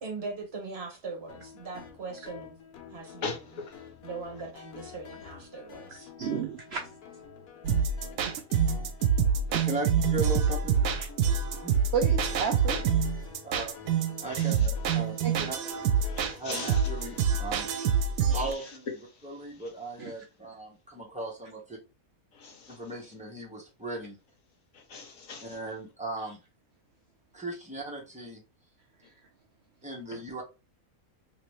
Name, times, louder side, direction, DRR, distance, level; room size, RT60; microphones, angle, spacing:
voice 1, 0.0-2.6 2.9-3.6 4.0-6.1, right 3 dB, 45° right, 1.2 m, -40 dB
sound 1, 1.3-17.2, left 7 dB, 85° left, 1.3 m, -48 dB
voice 2, 6.2-7.2 9.5-9.7 10.9-11.1 11.9-12.9 15.2-15.5 20.0-20.2 26.2-26.3 29.0-29.2, right 6 dB, 70° right, 0.6 m, -33 dB
sound 2, 7.6-18.5, right 7 dB, 85° right, 1.1 m, -26 dB
voice 3, 10.1-10.8 11.5-11.8 13.4-13.7 14.2-15.5 16.4-17.8 18.3-21.8 22.7-24.2 25.4-26.4 27.3-28.4 29.8-30.4, right 2 dB, 5° right, 0.8 m, -37 dB
voice 4, 16.1-16.8 22.4-22.8 24.9-25.4, left 4 dB, 65° left, 1.2 m, -38 dB
2.9 x 2.9 x 3.0 m
omnidirectional pair, 1.5 m